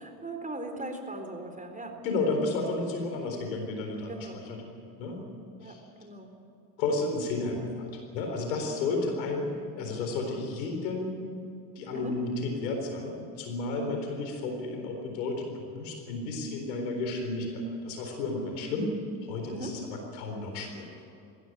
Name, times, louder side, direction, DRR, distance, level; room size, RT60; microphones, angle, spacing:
voice 1, 0.0-2.0 4.1-4.4 5.6-6.3 8.7-8.9 11.9-12.2 13.8-14.0 19.5-19.8, right 2 dB, 15° right, 5 dB, 4.1 m, -40 dB
voice 2, 2.0-4.6 5.0-5.2 5.6-5.8 6.8-11.1 11.8-18.9 19.2-21.0, left 3 dB, 85° left, 3 dB, 4.2 m, -32 dB
20.5 x 16.5 x 9.1 m, 2.6 s
hypercardioid pair, 65°, 50 cm